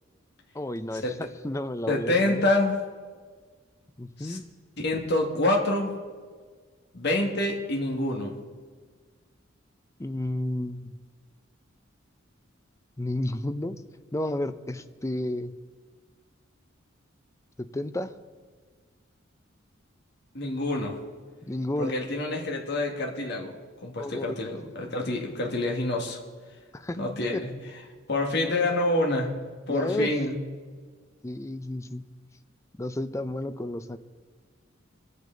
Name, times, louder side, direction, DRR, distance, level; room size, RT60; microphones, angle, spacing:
voice 1, 0.5-2.5 4.0-4.4 10.0-11.0 13.0-13.8 14.1-15.5 17.6-18.1 21.5-21.9 24.0-24.4 24.8-25.0 26.7-27.0 27.3-27.4 29.7-30.2 31.2-32.0 32.8-34.0, left 1 dB, 15° left, 11 dB, 0.5 m, -32 dB
voice 2, 1.9-2.7 4.2-4.4 4.8-5.9 6.9-8.3 20.3-21.0 21.8-26.2 27.0-27.5 28.1-29.3 29.7-30.4, left 2 dB, 60° left, 0 dB, 2.0 m, -27 dB
24.0 x 8.1 x 3.9 m, 1.5 s
head